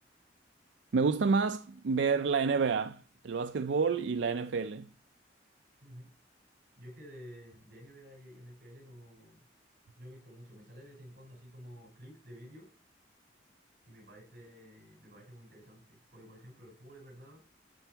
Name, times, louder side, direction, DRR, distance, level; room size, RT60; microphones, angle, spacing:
voice 1, 0.9-4.9, right 5 dB, 80° right, 0.4 m, -29 dB
voice 2, 5.8-6.1 6.8-9.4 10.0-12.7 13.8-17.4, equal, 55° right, 5.1 m, -51 dB
12.0 x 4.5 x 4.5 m
head